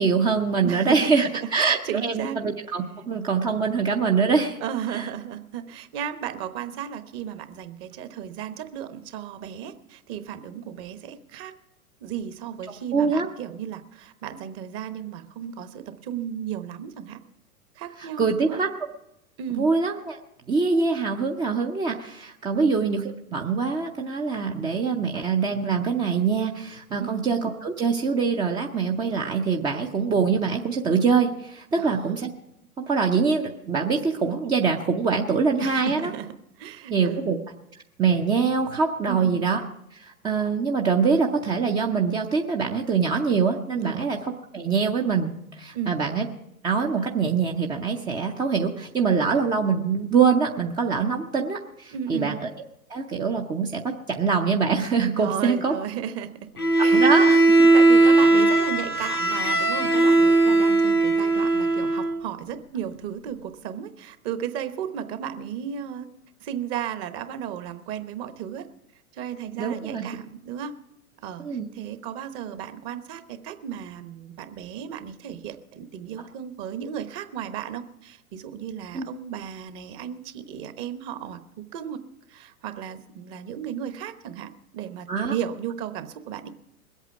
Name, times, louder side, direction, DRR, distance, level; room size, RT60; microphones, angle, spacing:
voice 1, 0.0-4.6 4.9-5.0 12.9-13.3 18.0-18.7 19.5-20.2 20.5-32.3 32.8-36.1 36.9-37.4 38.0-39.6 39.9-46.3 46.6-52.5 52.9-53.8 54.1-55.7 56.9-57.7 69.6-70.1 71.4-71.7 78.9-79.0 85.1-85.3, right 5 dB, 10° right, 2 dB, 0.5 m, -24 dB
voice 2, 0.6-1.1 1.4-2.4 4.6-11.5 12.0-17.2 17.8-18.6 19.4-19.7 22.5-22.8 27.0-27.2 31.8-32.2 35.6-36.3 36.6-37.4 39.1-39.5 43.8-44.1 45.7-46.1 51.9-52.4 55.2-56.3 56.8-57.1 57.7-66.1 66.4-68.7 69.1-70.7 71.2-71.4 71.7-82.0 82.3-86.5, right 9 dB, 30° right, 10 dB, 1.0 m, -34 dB
Bowed string instrument, 56.6-62.2, right 2 dB, 90° left, 2.1 m, -18 dB
21.0 x 8.2 x 5.9 m, 0.81 s
figure-of-eight pair, 100°, 44 cm